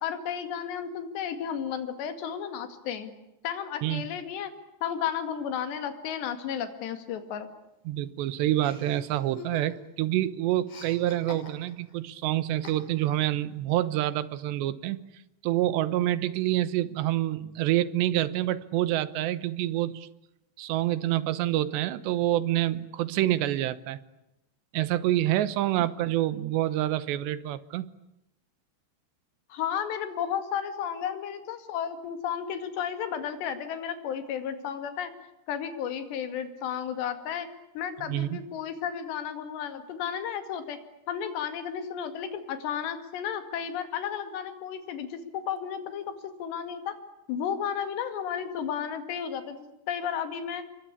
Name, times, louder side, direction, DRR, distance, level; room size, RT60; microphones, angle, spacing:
voice 1, 0.0-3.1 3.4-4.5 4.8-7.5 29.5-35.1 35.5-37.5 37.8-40.8 41.1-46.1 46.4-47.0 47.3-49.6 49.9-50.6, left 8 dB, 80° left, 9 dB, 4.4 m, -33 dB
voice 2, 7.9-15.0 15.4-20.1 20.6-24.0 24.7-27.9 38.0-38.4, right 14 dB, 85° right, 16 dB, 3.3 m, -27 dB
Chuckle chortle, 8.6-10.0 10.3-11.9 12.6-13.2, left 4 dB, 65° left, 7.9 m, -46 dB
28.5 x 23.0 x 8.6 m, 0.88 s
omnidirectional pair, 4.9 m